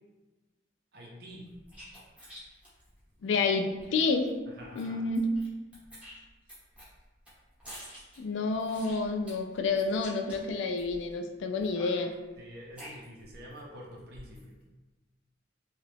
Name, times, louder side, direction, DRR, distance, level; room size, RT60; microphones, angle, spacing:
voice 1, 0.9-1.5 4.5-5.0 12.4-14.5, equal, 55° right, -3 dB, 0.7 m, -47 dB
sound 1, 1.4-3.9 4.3-4.4 4.6-5.5 5.7-11.1 11.6-13.6 13.9-14.5, equal, 5° right, 0.9 m, -49 dB
voice 2, 3.2-4.3 4.7-5.3 8.2-12.1, left 4 dB, 75° left, 5 dB, 0.3 m, -29 dB
2.8 x 2.3 x 3.3 m, 1.2 s
head